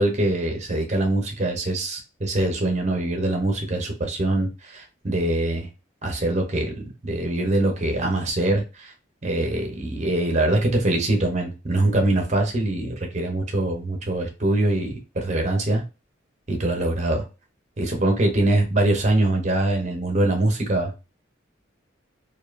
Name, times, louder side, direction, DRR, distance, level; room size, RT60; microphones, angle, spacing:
voice 1, 0.0-5.7 6.0-6.7 7.0-8.9 9.2-15.8 16.5-17.2 17.8-20.9, right 1 dB, 35° right, 2 dB, 0.7 m, -23 dB
2.7 x 2.2 x 2.4 m, 0.29 s
head